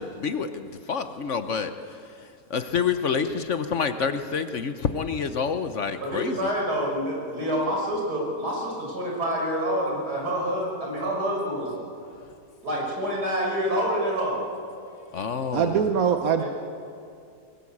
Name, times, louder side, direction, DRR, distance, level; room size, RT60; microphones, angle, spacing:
voice 1, 0.0-2.0 2.5-6.5 15.1-15.8, left 6 dB, 55° left, 9 dB, 1.2 m, -28 dB
voice 2, 6.0-11.7 12.6-14.4 16.4-16.5, equal, 85° right, -2 dB, 6.6 m, -27 dB
voice 3, 15.5-16.4, right 7 dB, 65° right, 6 dB, 1.3 m, -22 dB
21.5 x 20.0 x 8.6 m, 2.4 s
omnidirectional pair, 1.7 m